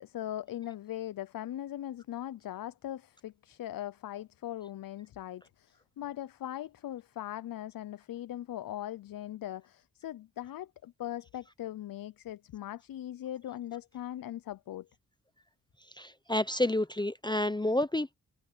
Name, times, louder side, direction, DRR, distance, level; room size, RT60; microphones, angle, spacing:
voice 1, 0.0-14.9, left 12 dB, 70° left, 0.6 m, -40 dB
voice 2, 16.0-18.1, left 1 dB, 10° left, 0.7 m, -29 dB
cardioid pair, 60°, 35 cm